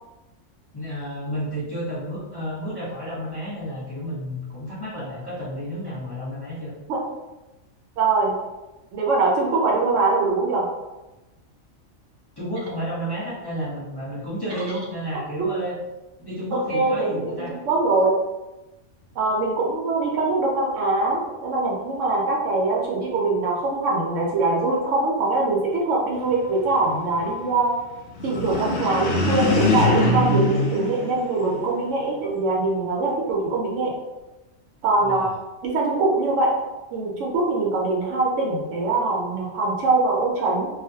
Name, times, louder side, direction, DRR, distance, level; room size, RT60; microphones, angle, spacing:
voice 1, 0.7-6.7 12.4-15.8 16.2-17.5 35.0-35.3, equal, 20° left, -9 dB, 0.7 m, -31 dB
voice 2, 8.0-8.3 8.9-10.7 15.4-15.5 16.7-18.2 19.2-27.7 28.2-33.9 34.8-35.3 35.6-36.5 36.9-40.7, right 3 dB, 70° right, -3 dB, 0.9 m, -23 dB
sound 1, 28.2-31.8, left 2 dB, 70° left, 0.8 m, -22 dB
2.4 x 2.1 x 2.6 m, 1.0 s
omnidirectional pair, 1.4 m